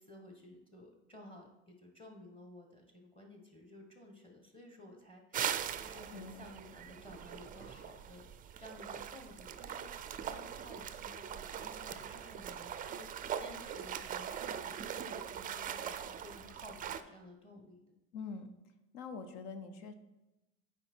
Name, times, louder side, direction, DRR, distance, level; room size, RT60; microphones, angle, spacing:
voice 1, 0.0-8.3 8.6-9.9 10.2-17.8, left 1 dB, 15° left, 2 dB, 1.2 m, -54 dB
sound 1, 5.3-17.0, right 9 dB, 25° right, 0.4 m, -41 dB
voice 2, 6.1-6.5 18.1-18.5 18.9-19.9, left 5 dB, 70° left, 9 dB, 0.8 m, -44 dB
7.7 x 4.7 x 4.4 m, 0.97 s
supercardioid pair, 110°, 35 cm